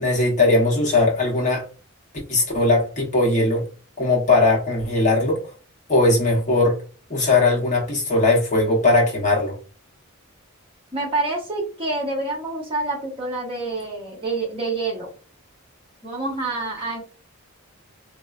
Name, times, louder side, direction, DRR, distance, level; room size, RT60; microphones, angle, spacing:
voice 1, 0.0-1.6 2.3-3.6 4.0-5.4 5.9-6.8 7.1-9.6, left 2 dB, 35° left, 0.9 m, -19 dB
voice 2, 10.9-15.1 16.0-17.1, right 2 dB, 25° right, 1.0 m, -27 dB
4.1 x 2.1 x 2.4 m
head